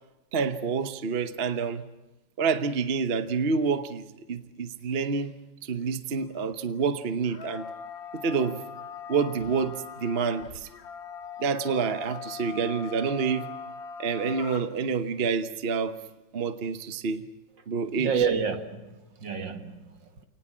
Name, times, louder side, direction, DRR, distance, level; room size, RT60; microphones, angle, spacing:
voice 1, 0.3-1.8 2.4-5.3 5.6-7.7 8.1-8.6 9.1-10.7 11.4-13.5 14.0-16.0 16.3-17.2 17.7-18.2, right 5 dB, 40° right, 0.9 m, -28 dB
sound 1, 6.2-6.3 7.2-14.6, left 6 dB, 65° left, 2.0 m, -41 dB
voice 2, 18.0-20.2, right 6 dB, 60° right, 2.4 m, -29 dB
28.5 x 19.0 x 7.5 m
omnidirectional pair, 2.4 m